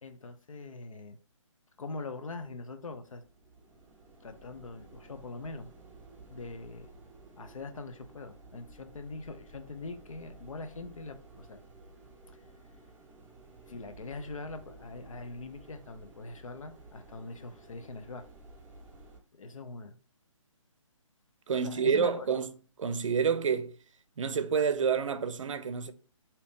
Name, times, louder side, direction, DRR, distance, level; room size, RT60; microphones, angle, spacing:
voice 1, 0.0-1.2 1.8-3.2 4.2-5.7 6.3-6.9 7.4-11.6 13.7-18.2 19.3-20.0 21.5-22.3, left 3 dB, 80° left, 0.6 m, -42 dB
sound 1, 3.0-19.2, right 2 dB, 10° right, 0.8 m, -54 dB
voice 2, 21.5-22.5 22.8-23.7 24.2-25.9, right 6 dB, 70° right, 0.5 m, -28 dB
2.8 x 2.7 x 3.4 m
hypercardioid pair, 155°, 17 cm